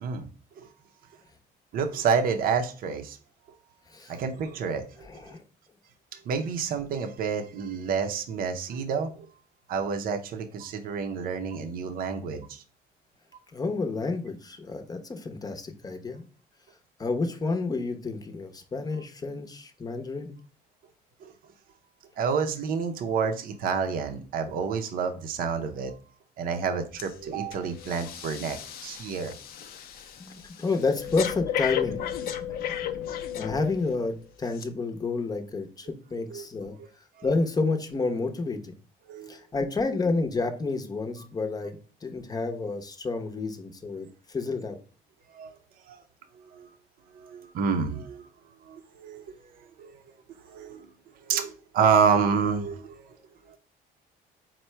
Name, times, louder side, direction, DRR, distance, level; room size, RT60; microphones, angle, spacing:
voice 1, 1.7-3.2 4.1-5.1 6.3-9.3 9.7-12.6 21.2-21.3 22.2-25.9 26.4-29.3 36.1-36.5 39.1-39.4 45.3-45.5 45.9-46.0 46.5-46.7 47.2-48.3 48.7-49.2 49.8-49.9 50.4-50.9 51.3-53.1 53.5-53.6, right 6 dB, 60° right, 5 dB, 0.6 m, -28 dB
voice 2, 5.0-5.4 13.5-16.3 17.0-20.4 30.2-33.0 33.3-36.7 37.2-38.8 39.3-44.8, left 3 dB, 20° left, 5 dB, 0.7 m, -30 dB
Breathing, 27.0-27.2 27.5-34.0 34.5-34.6, left 10 dB, 65° left, 0.5 m, -34 dB
4.3 x 2.2 x 4.3 m, 0.37 s
cardioid pair, 110°, 17 cm